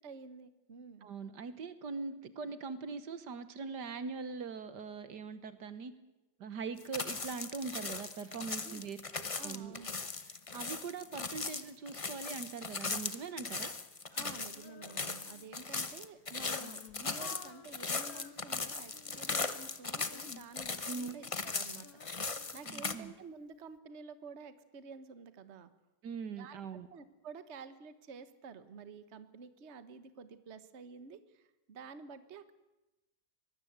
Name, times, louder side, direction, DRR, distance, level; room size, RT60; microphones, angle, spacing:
voice 1, 0.0-1.1 8.6-8.8 9.3-9.9 14.1-25.7 26.4-26.6 26.9-32.5, right 5 dB, 40° right, 12 dB, 1.4 m, -50 dB
voice 2, 1.0-5.9 6.4-9.8 10.5-13.8 20.8-21.1 22.6-23.1 26.0-26.9, right 5 dB, 70° right, 12 dB, 1.8 m, -42 dB
sound 1, 6.8-22.9, left 4 dB, 25° left, 0.8 m, -39 dB
Female singing, 14.5-15.6 16.2-19.4 20.0-23.2, left 6 dB, 55° left, 1.5 m, -54 dB
24.0 x 20.0 x 8.1 m, 1.0 s
omnidirectional pair, 2.0 m